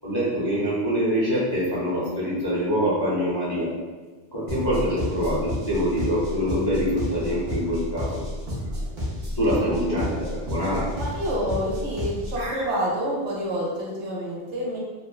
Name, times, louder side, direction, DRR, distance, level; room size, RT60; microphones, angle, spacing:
voice 1, 0.0-3.7 4.3-8.1 9.4-10.9 12.4-12.6, equal, 25° left, -9 dB, 0.6 m, -25 dB
sound 1, 4.5-12.5, left 1 dB, 50° right, 0.7 m, -31 dB
voice 2, 9.6-10.3 11.0-14.8, equal, 75° right, -4 dB, 1.0 m, -28 dB
2.8 x 2.1 x 2.3 m, 1.3 s
omnidirectional pair, 1.2 m